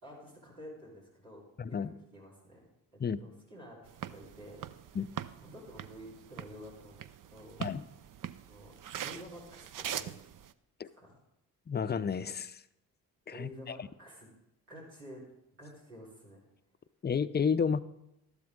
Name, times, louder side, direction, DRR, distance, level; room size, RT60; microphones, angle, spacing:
voice 1, 0.0-1.4 1.7-2.6 3.2-4.7 5.4-7.6 8.5-8.7 9.0-10.2 11.0-11.1 13.3-14.3 14.7-15.2 15.6-16.4, equal, 90° right, -7 dB, 4.5 m, -50 dB
voice 2, 1.6-1.9 3.0-3.2 4.9-5.1 7.6-7.8 10.8-10.9 11.7-12.6 13.3-13.9 17.0-17.8, left 6 dB, 25° left, 14 dB, 0.6 m, -31 dB
sound 1, 3.9-10.5, right 10 dB, 50° right, 0.6 m, -43 dB
13.0 x 12.0 x 3.7 m, 0.86 s
hypercardioid pair, 45°, 43 cm